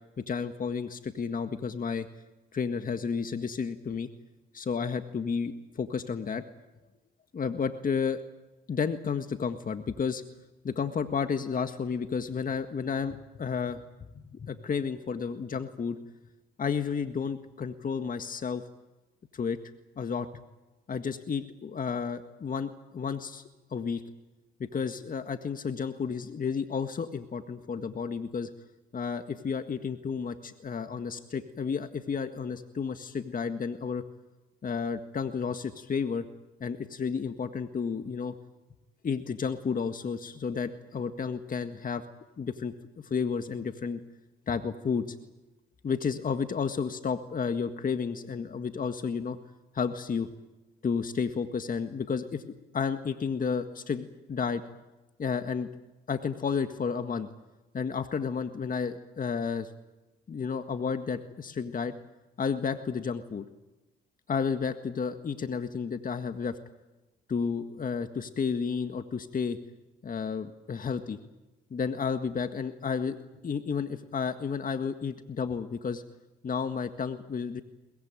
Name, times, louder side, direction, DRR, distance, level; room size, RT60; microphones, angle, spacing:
voice 1, 0.2-2.1 2.5-4.1 4.5-6.4 7.3-8.2 8.7-10.2 10.6-13.8 14.3-16.0 16.6-18.6 19.3-19.6 20.0-20.3 20.9-23.4 23.7-24.0 24.6-28.5 28.9-34.0 34.6-36.3 36.6-38.3 39.0-42.0 42.4-44.0 44.5-45.1 45.8-49.4 49.7-50.3 50.8-54.6 55.2-55.7 56.1-57.3 57.7-59.7 60.3-61.9 62.4-63.4 64.3-66.6 67.3-69.6 70.0-71.2 71.7-73.2 73.4-76.0 76.4-77.6, left 6 dB, 45° left, 8 dB, 1.8 m, -32 dB
22.0 x 21.0 x 9.1 m, 1.0 s
supercardioid pair, 60°, 20 cm